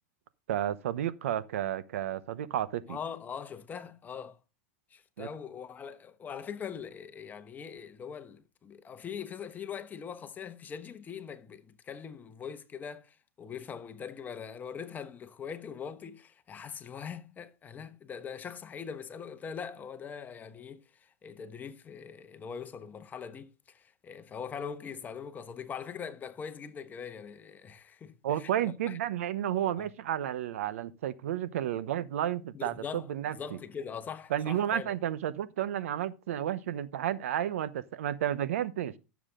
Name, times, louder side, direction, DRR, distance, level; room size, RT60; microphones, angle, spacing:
voice 1, 0.5-3.0 5.2-5.3 28.2-33.4 34.3-38.9, right 11 dB, 80° right, 0.9 m, -32 dB
voice 2, 2.9-4.4 4.9-29.0 29.8-29.9 32.5-33.1 33.3-34.9, left 7 dB, 25° left, 1.1 m, -42 dB
12.0 x 7.2 x 3.8 m
supercardioid pair, 120°, 7 cm